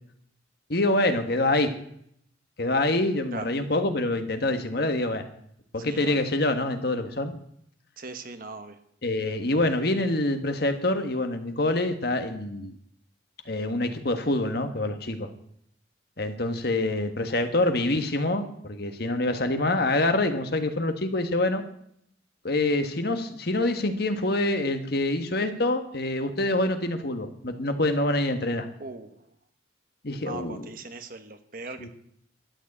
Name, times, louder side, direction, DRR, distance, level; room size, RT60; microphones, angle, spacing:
voice 1, 0.7-1.7 2.6-5.2 5.7-7.3 9.0-12.7 13.4-15.3 16.2-21.6 22.4-28.7 30.0-30.7 31.8-31.9, left 2 dB, 55° left, 7 dB, 1.5 m, -26 dB
voice 2, 5.8-6.2 8.0-8.8 28.8-29.2 30.2-31.9, right 3 dB, 50° right, 8 dB, 1.3 m, -39 dB
13.0 x 9.5 x 8.5 m, 0.70 s
head